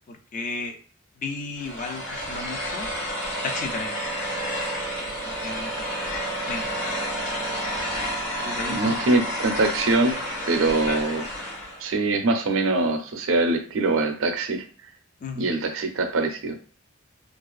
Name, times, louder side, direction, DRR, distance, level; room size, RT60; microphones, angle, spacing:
voice 1, 0.1-0.8 1.2-2.9 3.4-4.0 5.0-5.9 6.5-7.0 8.4-9.0 15.2-15.5, left 3 dB, 40° left, 5 dB, 0.3 m, -34 dB
sound 1, 1.6-11.9, equal, 65° left, 1.3 m, -30 dB
voice 2, 8.7-10.2 10.5-11.3 11.8-14.6 15.4-16.5, right 2 dB, 75° right, 6 dB, 0.5 m, -23 dB
2.4 x 2.3 x 2.3 m, 0.42 s
head